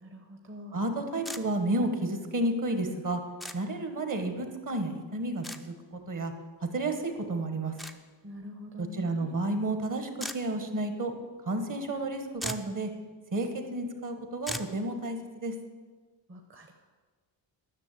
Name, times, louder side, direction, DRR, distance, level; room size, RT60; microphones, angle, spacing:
voice 1, 0.0-0.7 8.2-9.3 16.3-16.7, left 1 dB, 25° right, 3 dB, 0.9 m, -45 dB
voice 2, 0.7-3.2 3.5-6.3 6.7-7.7 8.8-11.1 11.5-12.9 13.3-15.5, right 2 dB, 40° right, 6 dB, 1.4 m, -31 dB
sound 1, 1.2-1.4 3.4-3.6 5.4-5.6 7.8-8.0 10.2-10.4 12.0-12.1 12.4-12.7 14.5-14.7, equal, ahead, 0.4 m, -37 dB
10.5 x 6.5 x 8.4 m, 1.4 s
wide cardioid pair, 130°, 46 cm